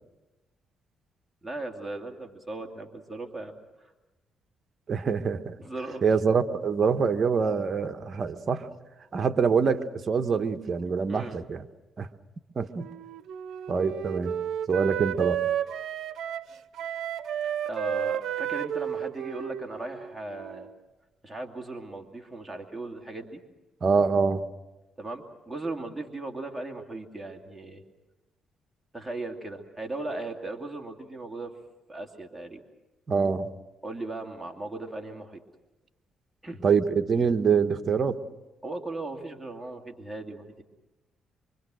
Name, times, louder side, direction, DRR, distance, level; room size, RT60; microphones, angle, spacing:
voice 1, 1.4-3.5 3.8-3.9 5.6-6.0 11.1-11.4 17.4-20.7 21.2-23.4 25.0-27.8 28.9-31.5 31.9-32.6 33.8-35.4 36.4-36.6 38.6-40.6, right 2 dB, 10° right, 2 dB, 2.7 m, -37 dB
voice 2, 4.9-5.6 6.0-8.7 9.1-11.6 12.0-12.1 12.6-12.9 13.7-14.3 14.7-15.4 23.8-24.4 33.1-33.5 36.6-38.2, right 5 dB, 45° right, 8 dB, 1.2 m, -25 dB
Wind instrument woodwind instrument, 12.8-20.8, right 10 dB, 70° right, 0.8 m, -32 dB
25.0 x 25.0 x 6.4 m, 1.1 s
cardioid pair, 90°, 0 cm